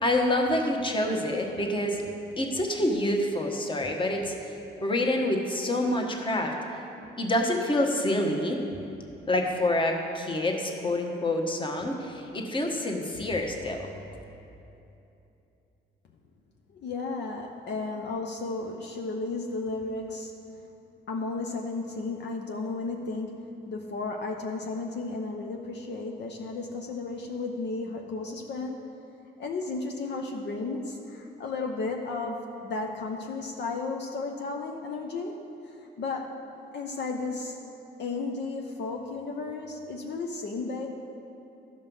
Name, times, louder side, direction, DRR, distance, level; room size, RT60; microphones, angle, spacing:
voice 1, 0.0-2.0 2.4-4.5 4.8-6.5 7.2-8.6 9.3-13.9, left 1 dB, 25° left, 2 dB, 1.2 m, -27 dB
voice 2, 16.7-20.3 21.1-28.9 29.4-35.4 35.6-36.3 36.7-37.6 38.0-40.9, left 3 dB, 60° left, 1 dB, 0.8 m, -34 dB
12.5 x 5.4 x 5.4 m, 2.8 s
cardioid pair, 90°, 20 cm